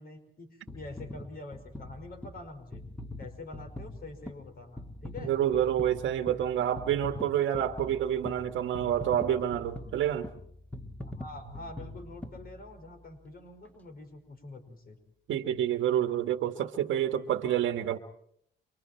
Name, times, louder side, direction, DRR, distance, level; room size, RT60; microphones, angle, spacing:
voice 1, 0.0-2.8 3.2-5.3 11.0-15.0, left 2 dB, 50° left, 5.2 m, -46 dB
sound 1, 0.7-13.1 13.6-13.8, left 1 dB, 10° left, 2.1 m, -43 dB
voice 2, 5.3-10.3 15.3-18.0, right 10 dB, 80° right, 1.6 m, -28 dB
29.5 x 24.5 x 4.6 m
cardioid pair, 90°, 20 cm